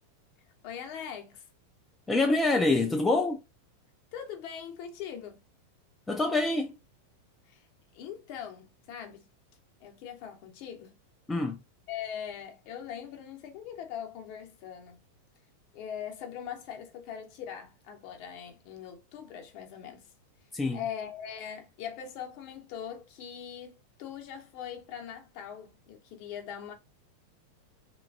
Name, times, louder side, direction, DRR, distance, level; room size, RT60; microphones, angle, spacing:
voice 1, 0.6-1.5 4.1-5.4 7.5-7.6 7.9-9.3 9.8-11.0 11.9-15.0 15.7-20.1 20.7-26.7, left 8 dB, 45° left, 0.7 m, -41 dB
voice 2, 2.1-3.4 6.1-6.7 11.3-11.6 20.5-20.8, left 2 dB, 10° left, 0.3 m, -26 dB
3.1 x 2.2 x 2.3 m
figure-of-eight pair, 90°, 0 cm